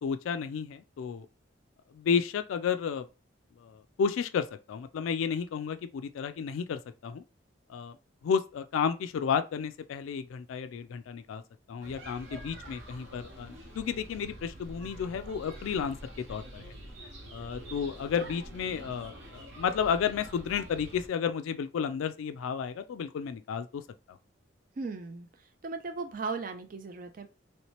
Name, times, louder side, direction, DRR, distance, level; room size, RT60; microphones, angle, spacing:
voice 1, 0.0-1.3 1.9-3.1 3.6-7.2 7.7-8.0 8.2-11.4 11.7-16.0 16.3-16.7 17.3-23.8 24.1-24.2, left 7 dB, 85° left, 0.3 m, -32 dB
sound 1, 11.8-21.1, right 1 dB, 65° right, 1.0 m, -46 dB
voice 2, 24.8-25.3 25.6-27.3, right 4 dB, 45° right, 0.4 m, -37 dB
3.1 x 2.9 x 3.0 m
head